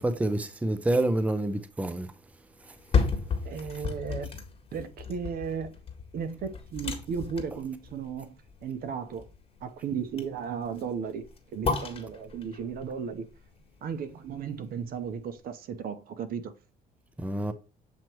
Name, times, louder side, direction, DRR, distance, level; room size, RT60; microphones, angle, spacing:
voice 1, 0.0-2.1 17.2-17.5, right 1 dB, 10° right, 0.6 m, -27 dB
sound 1, 2.6-14.7 15.1-15.2, left 5 dB, 35° left, 1.7 m, -34 dB
voice 2, 3.4-4.3 4.7-5.7 6.1-8.3 8.6-9.2 9.6-13.3 13.8-16.5, right 6 dB, 60° right, 0.9 m, -35 dB
7.4 x 3.0 x 4.5 m
cardioid pair, 110°, 17 cm